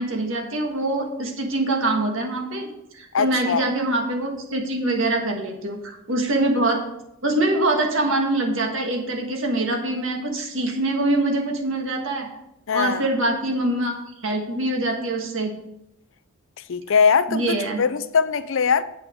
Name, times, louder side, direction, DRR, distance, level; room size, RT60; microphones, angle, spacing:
voice 1, 0.0-2.7 2.9-6.8 7.2-12.3 12.7-13.9 14.2-15.5 17.3-17.8, right 2 dB, 65° right, 1.5 m, -24 dB
voice 2, 3.1-3.7 12.7-13.0 16.7-18.8, left 6 dB, 65° left, 0.4 m, -21 dB
8.4 x 6.0 x 5.0 m
head